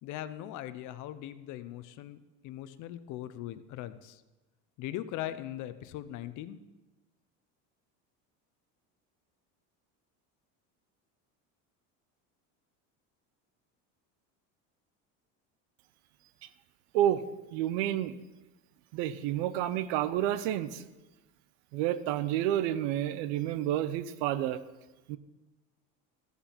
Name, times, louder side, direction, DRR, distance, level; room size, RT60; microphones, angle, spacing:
voice 1, 0.0-4.2 4.8-6.6, left 12 dB, 55° left, 13 dB, 0.7 m, -40 dB
voice 2, 17.5-18.1 18.9-20.8 21.7-24.6 25.1-25.2, right 12 dB, 85° right, 14 dB, 0.8 m, -29 dB
14.0 x 7.2 x 5.7 m, 1.1 s
cardioid pair, 140°, 36 cm